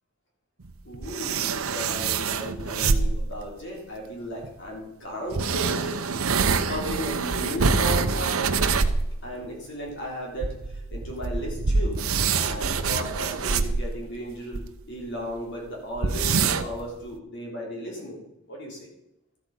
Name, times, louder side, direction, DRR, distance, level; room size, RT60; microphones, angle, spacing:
sound 1, 0.6-3.4 4.4-4.5 5.3-9.1 9.4-9.5 9.9-10.0 10.4-14.6 15.1-15.2 15.4-15.5 16.0-16.8, right 4 dB, 90° right, 0.8 m, -25 dB
voice 1, 0.8-8.6 9.2-12.0 12.3-18.9, equal, 60° left, -2 dB, 3.3 m, -35 dB
13.0 x 8.4 x 5.3 m, 0.88 s
head